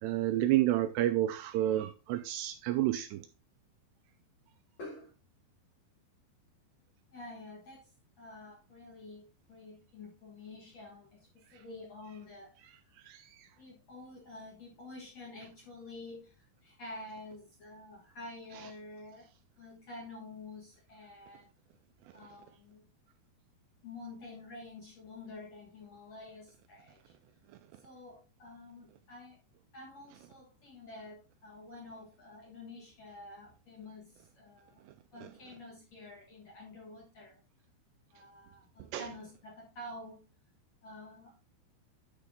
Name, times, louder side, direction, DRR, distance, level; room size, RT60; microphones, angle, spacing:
voice 1, 0.0-3.3 13.0-13.5 38.9-39.0, right 14 dB, 80° right, 2.5 m, -30 dB
voice 2, 4.8-5.2 7.1-7.9 8.2-12.9 13.6-19.3 19.6-21.5 22.1-22.9 23.8-27.1 27.8-29.4 29.7-34.9 35.1-37.4 38.1-40.2 40.8-41.6, left 2 dB, 55° left, 1.9 m, -49 dB
10.5 x 4.9 x 3.5 m
omnidirectional pair, 5.2 m